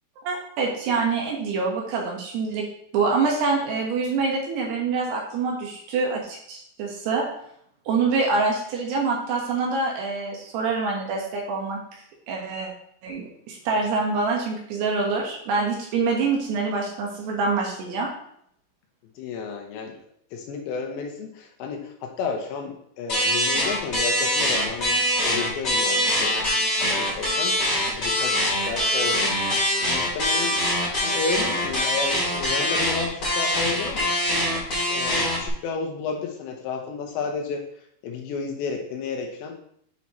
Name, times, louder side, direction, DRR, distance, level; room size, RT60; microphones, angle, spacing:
voice 1, 0.2-2.7 2.9-7.3 7.9-11.8 12.3-12.7 13.0-18.1, right 4 dB, 70° right, -1 dB, 3.1 m, -25 dB
voice 2, 19.2-19.9 20.3-27.7 28.0-29.3 29.8-30.6 31.0-34.1 34.9-37.6 38.0-39.5, left 4 dB, 80° left, 1 dB, 3.2 m, -32 dB
sound 1, 23.1-35.5, left 1 dB, 25° left, 1.8 m, -23 dB
8.3 x 5.8 x 3.1 m, 0.69 s
omnidirectional pair, 5.4 m